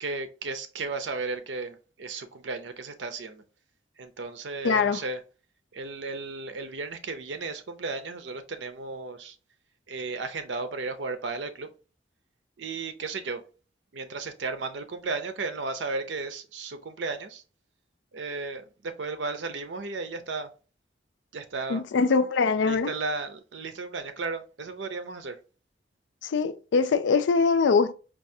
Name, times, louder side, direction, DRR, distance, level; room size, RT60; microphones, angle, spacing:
voice 1, 0.0-3.4 4.0-5.2 5.7-9.4 9.9-11.7 12.6-13.4 13.9-17.4 18.1-20.5 21.3-21.8 22.6-25.4, right 3 dB, 85° right, 0.6 m, -34 dB
voice 2, 4.6-5.0 21.7-22.9 26.2-27.9, left 4 dB, 85° left, 0.4 m, -23 dB
4.6 x 2.4 x 2.6 m
head